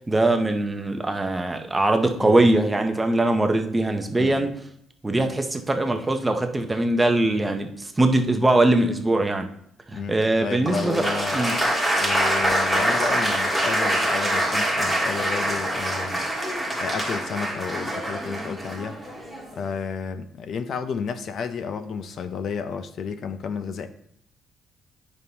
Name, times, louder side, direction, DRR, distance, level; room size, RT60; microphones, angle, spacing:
voice 1, 0.1-4.5 5.0-9.5 9.9-11.0 11.3-11.6, right 2 dB, 15° right, 5 dB, 0.6 m, -21 dB
voice 2, 2.2-2.5 4.1-4.5 9.9-11.4 12.0-16.2 16.8-19.0 19.5-23.9, left 6 dB, 55° left, 10 dB, 0.5 m, -32 dB
Applause, 10.7-19.6, right 1 dB, 5° left, 1.6 m, -25 dB
9.7 x 5.4 x 2.8 m, 0.70 s
cardioid pair, 145°, 0 cm